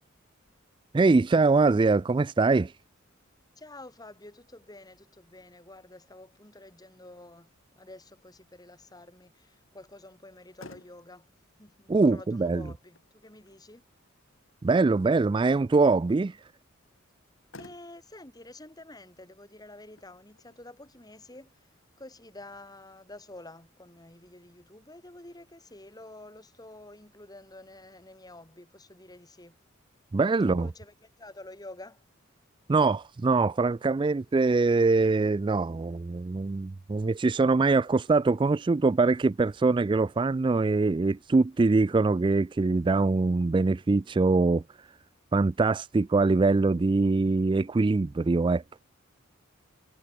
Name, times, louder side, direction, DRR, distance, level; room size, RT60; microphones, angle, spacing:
voice 1, 0.9-2.7 11.9-12.6 14.6-16.4 30.1-30.7 32.7-44.9 45.3-48.6, right 3 dB, 25° right, 0.3 m, -23 dB
voice 2, 3.6-11.3 11.6-13.8 17.6-21.7 22.0-29.6 30.4-32.0, left 2 dB, 20° left, 2.9 m, -49 dB
Motor vehicle (road), 10.5-23.2, left 2 dB, 70° left, 3.8 m, -57 dB
head